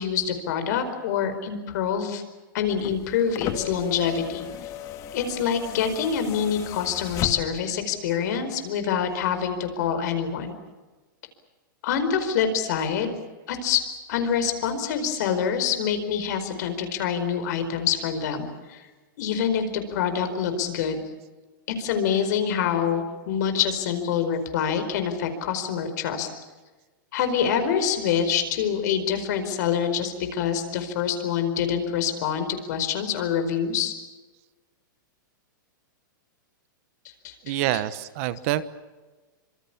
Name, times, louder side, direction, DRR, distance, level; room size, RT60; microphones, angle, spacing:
voice 1, 0.0-2.2 2.5-4.5 5.1-10.5 11.8-13.1 13.5-13.8 14.1-18.8 19.2-21.0 21.8-26.3 27.1-33.9 37.2-37.5, left 7 dB, 55° left, 8 dB, 4.7 m, -26 dB
sound 1, 2.6-7.8 9.0-9.1, left 10 dB, 30° left, 1.7 m, -36 dB
voice 2, 37.4-38.6, right 14 dB, 45° right, 15 dB, 1.1 m, -26 dB
26.0 x 24.5 x 7.2 m, 1.2 s
hypercardioid pair, 155°, 11 cm